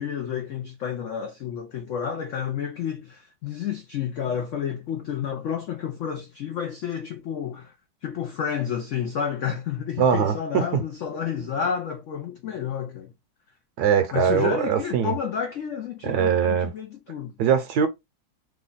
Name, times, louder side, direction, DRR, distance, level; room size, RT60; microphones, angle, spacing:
voice 1, 0.0-7.7 8.0-13.1 14.1-17.3, left 8 dB, 85° left, 0.6 m, -30 dB
voice 2, 10.0-10.8 13.8-15.1 16.0-16.7 17.4-17.9, right 8 dB, 70° right, 1.1 m, -22 dB
3.2 x 2.3 x 3.8 m
omnidirectional pair, 2.0 m